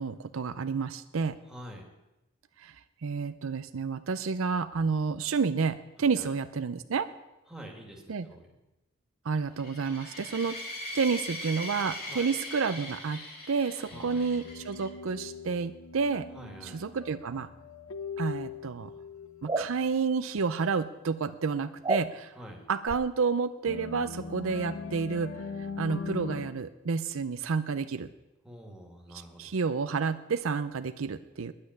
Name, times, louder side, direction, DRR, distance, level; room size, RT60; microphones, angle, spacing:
voice 1, 0.0-1.4 2.6-2.7 3.0-7.1 8.1-8.3 9.3-10.6 10.9-16.3 16.6-17.5 18.2-18.9 19.4-22.3 22.7-25.4 25.8-28.1 29.4-31.5, right 5 dB, 70° right, 12 dB, 0.5 m, -30 dB
voice 2, 1.4-1.8 6.1-6.3 7.5-8.5 12.1-12.3 13.9-14.3 16.3-16.8 22.3-22.6 28.4-29.5, equal, 5° right, 0 dB, 2.2 m, -46 dB
sound 1, 9.6-14.8, left 1 dB, 45° left, 5.7 m, -40 dB
Darck Water, 13.9-19.9 20.4-21.0 22.0-22.1 23.7-26.5, left 4 dB, 80° left, 0.9 m, -40 dB
sound 2, 19.5-19.7 21.8-22.1 22.9-23.0, right 3 dB, 20° right, 0.5 m, -29 dB
10.0 x 8.6 x 9.6 m, 0.98 s
head